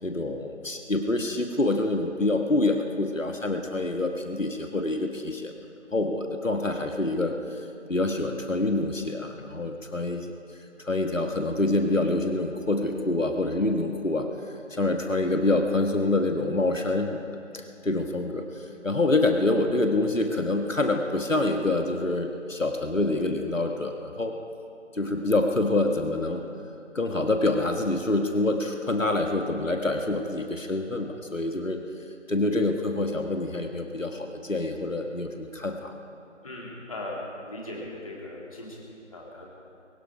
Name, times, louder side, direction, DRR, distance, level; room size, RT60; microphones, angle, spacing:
voice 1, 0.0-5.5 5.9-7.6 7.9-10.3 10.8-14.3 14.7-17.2 17.5-24.3 24.9-26.4 26.9-31.8 32.3-35.9, left 2 dB, 85° left, 4 dB, 1.7 m, -26 dB
voice 2, 36.4-39.5, left 1 dB, 25° left, -3 dB, 2.7 m, -39 dB
23.0 x 11.5 x 5.1 m, 2.6 s
figure-of-eight pair, 165°, 38 cm